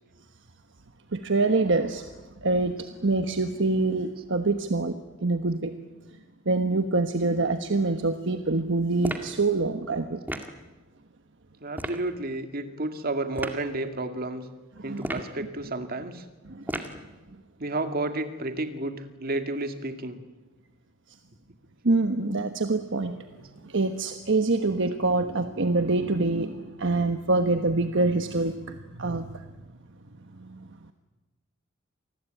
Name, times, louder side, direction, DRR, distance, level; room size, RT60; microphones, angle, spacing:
voice 1, 1.1-2.1 2.4-5.0 5.2-5.7 6.4-10.2 14.8-15.1 16.5-16.9 21.8-29.5 30.4-30.7, right 3 dB, 60° right, 7 dB, 1.3 m, -26 dB
sound 1, 9.0-9.4 10.3-10.6 11.7-12.0 13.3-13.6 15.0-15.4 16.7-17.0, right 1 dB, 10° right, 1.9 m, -33 dB
voice 2, 11.6-14.4 14.8-16.2 17.6-20.2, right 2 dB, 45° right, 7 dB, 2.2 m, -31 dB
27.5 x 20.0 x 9.2 m, 1.2 s
head